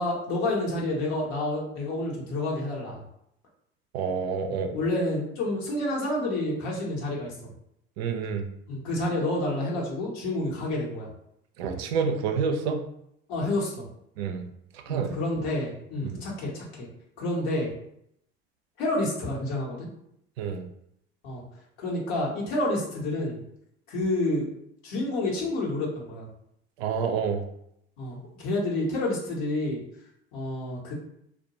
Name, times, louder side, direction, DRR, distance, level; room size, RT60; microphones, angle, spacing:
voice 1, 0.0-3.0 4.5-7.3 8.7-11.1 13.3-13.9 14.9-16.9 17.2-17.7 18.8-19.9 21.2-21.4 21.8-23.4 23.9-24.5 24.8-26.3 28.0-29.8 30.3-30.9, left 1 dB, 65° left, -3 dB, 1.0 m, -29 dB
voice 2, 3.9-4.8 8.0-8.5 11.6-12.8 14.2-14.4 14.9-15.1 16.1-16.2 20.4-20.6 26.8-27.4, right 6 dB, 75° right, 5 dB, 0.5 m, -28 dB
2.2 x 2.2 x 2.8 m, 0.75 s
hypercardioid pair, 70°, 31 cm